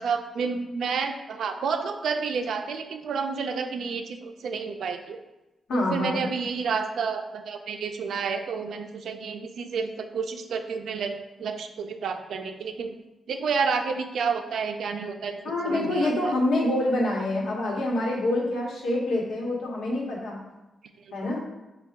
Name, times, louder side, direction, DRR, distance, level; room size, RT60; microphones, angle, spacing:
voice 1, 0.0-5.2 5.7-13.0 13.3-16.4, right 5 dB, 75° right, 6 dB, 0.3 m, -30 dB
voice 2, 5.7-6.3 15.4-20.4 21.1-21.4, left 1 dB, 90° left, -2 dB, 1.0 m, -26 dB
5.3 x 2.2 x 3.5 m, 1.0 s
wide cardioid pair, 155°, 0 cm